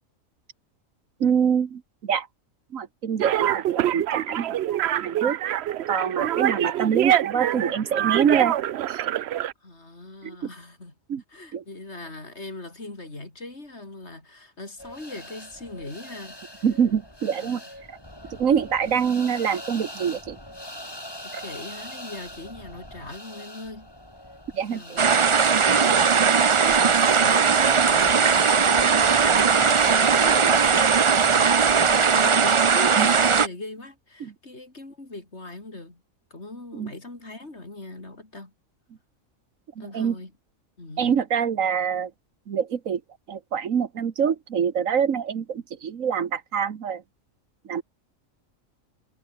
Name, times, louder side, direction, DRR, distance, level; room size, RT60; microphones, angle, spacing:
voice 1, 1.2-2.3 2.7-5.4 5.9-8.6 8.9-9.0 10.2-10.5 11.1-11.2 11.5-11.6 16.6-17.6 17.9-18.0 18.3-20.4 21.3-21.4 24.5-25.0 26.6-26.8 33.0-33.1 34.2-34.3 36.7-36.9 39.8-40.2 41.0-42.1 42.5-43.0 43.3-47.0 47.6-47.8, right 7 dB, 80° right, 1.7 m, -25 dB
sound 1, 3.2-9.5, right 12 dB, 65° right, 0.8 m, -25 dB
voice 2, 9.6-10.9 11.3-16.6 17.4-17.6 21.2-23.9 24.7-25.3 25.7-26.3 26.8-31.0 31.3-36.0 36.3-38.5 39.8-40.3 40.8-41.1, left 2 dB, 55° left, 4.6 m, -39 dB
sound 2, 14.8-32.0, left 1 dB, 15° left, 6.2 m, -43 dB
sound 3, 25.0-33.5, right 6 dB, 40° right, 0.4 m, -19 dB
omnidirectional pair, 1.4 m